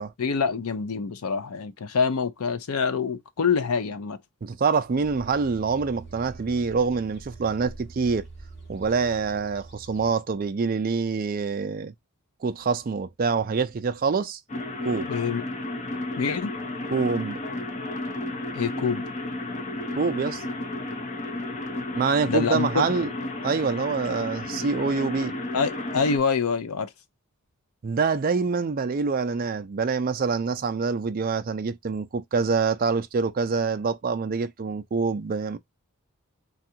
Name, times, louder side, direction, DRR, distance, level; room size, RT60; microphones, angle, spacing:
voice 1, 0.0-4.2 15.1-15.4 16.2-16.6 18.5-19.0 22.3-22.8 25.5-26.9, left 5 dB, 75° left, 0.5 m, -26 dB
voice 2, 4.4-8.3 8.7-11.9 12.4-14.4 14.8-15.1 16.9-17.4 19.9-20.4 21.9-23.1 23.4-25.4 27.8-35.6, right 5 dB, 40° right, 0.4 m, -26 dB
sound 1, 4.9-10.1, right 3 dB, 50° left, 1.7 m, -45 dB
sound 2, 14.5-26.2, left 1 dB, 30° left, 0.6 m, -33 dB
3.4 x 2.4 x 2.7 m
head